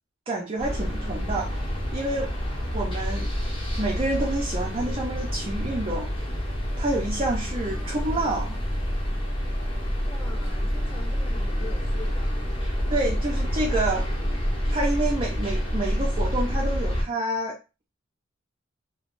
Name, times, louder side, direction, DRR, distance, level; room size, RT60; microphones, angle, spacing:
voice 1, 0.3-1.5 1.9-2.3 2.7-3.3 3.8-6.1 6.8-8.6 12.9-14.1 14.7-17.6, right 2 dB, 30° right, 0.4 m, -28 dB
sound 1, 0.6-17.0, equal, 25° left, 1.0 m, -28 dB
voice 2, 7.5-8.4 10.0-12.4, left 3 dB, 10° left, 0.7 m, -44 dB
3.2 x 2.0 x 2.4 m
head